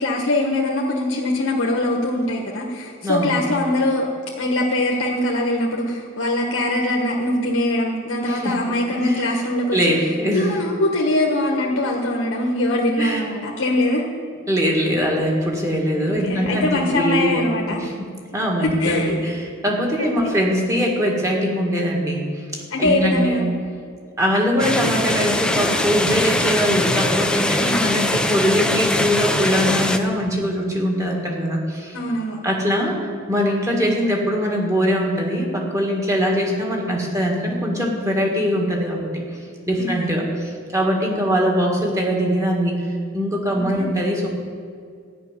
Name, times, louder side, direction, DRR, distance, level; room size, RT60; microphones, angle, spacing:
voice 1, 0.0-4.1 4.4-9.8 10.3-14.0 16.2-17.8 18.8-19.2 20.0-20.3 22.7-23.5 27.6-27.8 31.9-32.4 33.7-33.9 39.8-40.2 43.5-43.9, left 1 dB, 80° left, -1 dB, 1.4 m, -22 dB
voice 2, 3.0-3.3 8.3-8.6 9.0-9.3 9.7-10.6 13.0-13.2 14.5-17.4 17.8-22.3 22.8-23.5 24.2-32.0 32.4-39.2 39.7-42.8 43.1-44.3, equal, 15° right, -1 dB, 1.9 m, -22 dB
sound 1, 24.6-30.0, left 1 dB, 5° left, 0.6 m, -21 dB
13.0 x 6.2 x 9.7 m, 2.2 s
head